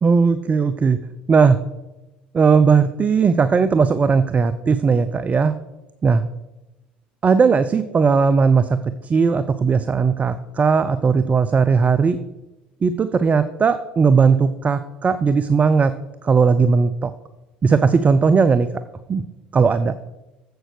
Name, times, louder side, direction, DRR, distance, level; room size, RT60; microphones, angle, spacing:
voice 1, 0.0-1.0 1.3-1.6 2.3-5.5 6.0-6.2 7.2-12.2 12.8-15.9 16.2-17.1 17.6-18.7 19.1-19.2 19.5-19.9, right 5 dB, 30° right, 13 dB, 0.6 m, -17 dB
8.0 x 7.6 x 6.7 m, 0.99 s
hypercardioid pair, 70°, 5 cm